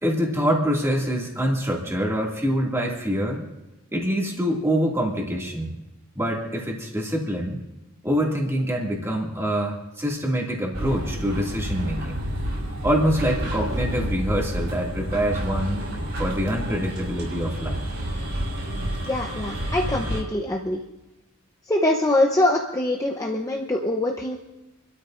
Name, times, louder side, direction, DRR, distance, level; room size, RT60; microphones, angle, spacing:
voice 1, 0.0-3.4 3.9-5.8 6.1-7.6 8.0-12.2 12.8-15.8 16.2-17.8, equal, 10° right, -2 dB, 2.3 m, -25 dB
sound 1, 10.7-20.2, equal, 55° right, 5.2 m, -29 dB
voice 2, 19.1-20.8 21.7-24.4, left 1 dB, 15° left, 1 dB, 0.8 m, -23 dB
28.5 x 13.0 x 2.6 m, 1.0 s
head